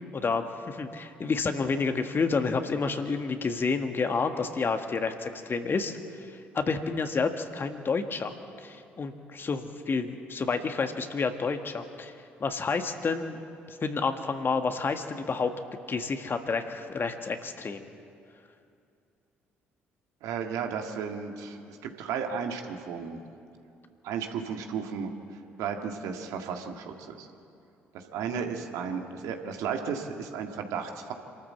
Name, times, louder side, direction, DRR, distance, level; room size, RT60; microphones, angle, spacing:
voice 1, 0.1-6.0 6.5-12.1 12.4-13.4 13.7-15.5 15.9-17.9, left 4 dB, 35° left, 7 dB, 1.7 m, -29 dB
voice 2, 20.2-23.2 24.0-25.1 25.6-27.3 27.9-31.1, right 6 dB, 65° right, 4 dB, 1.8 m, -34 dB
27.0 x 13.0 x 7.5 m, 2.5 s
figure-of-eight pair, 50°, 6 cm